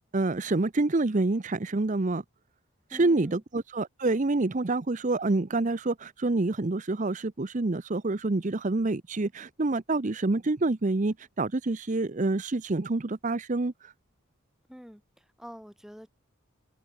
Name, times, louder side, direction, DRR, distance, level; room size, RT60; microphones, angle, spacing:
voice 1, 0.0-2.2 2.9-13.7, right 2 dB, 35° right, 0.7 m, -27 dB
voice 2, 2.9-3.4 14.7-16.1, equal, ahead, 3.5 m, -46 dB
head